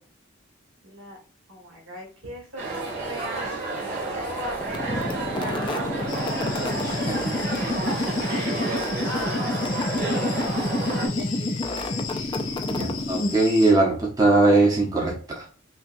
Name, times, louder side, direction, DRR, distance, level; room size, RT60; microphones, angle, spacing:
voice 1, 0.8-1.2 1.5-5.1 5.4-6.5 7.3-12.3, equal, 75° right, -1 dB, 1.9 m, -39 dB
sound 1, 2.6-11.1, right 3 dB, 40° right, 1.8 m, -31 dB
sound 2, 4.6-13.6, left 2 dB, 25° left, 0.4 m, -29 dB
sound 3, 6.1-13.7, left 6 dB, 75° left, 0.9 m, -38 dB
voice 2, 6.8-7.2 7.5-7.6 12.7-15.4, right 2 dB, 20° right, -3 dB, 0.9 m, -21 dB
5.6 x 2.3 x 2.6 m, 0.41 s
head